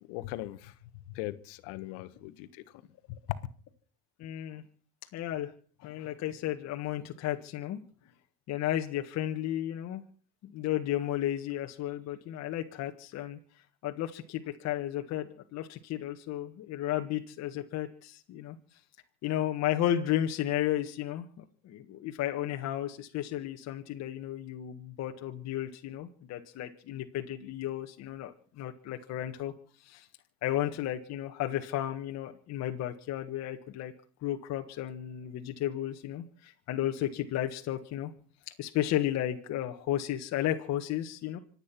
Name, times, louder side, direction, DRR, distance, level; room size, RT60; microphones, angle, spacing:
voice 1, 0.1-0.7 1.1-2.6 3.1-3.4, left 16 dB, 75° left, 1.5 m, -39 dB
voice 2, 4.2-4.6 5.1-5.5 5.8-7.8 8.5-10.0 10.5-13.4 13.8-18.6 19.2-29.5 29.8-30.1 30.4-33.9 34.2-38.1 38.6-41.4, left 12 dB, 55° left, 1.8 m, -33 dB
26.0 x 9.1 x 6.0 m
supercardioid pair, 100°, 33 cm